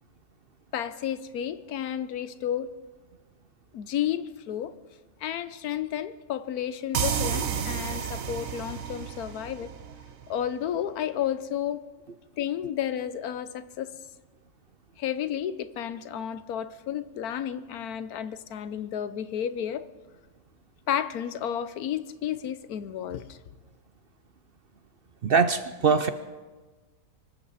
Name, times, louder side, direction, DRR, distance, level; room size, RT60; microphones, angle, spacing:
voice 1, 0.7-2.7 3.7-4.7 5.2-9.7 10.3-11.9 12.4-13.9 15.0-19.9 20.9-23.4, left 10 dB, 90° left, 1.3 m, -32 dB
sound 1, 6.9-10.5, right 8 dB, 70° right, 1.3 m, -31 dB
voice 2, 25.2-26.1, right 5 dB, 55° right, 0.7 m, -22 dB
24.0 x 14.0 x 4.2 m
omnidirectional pair, 1.5 m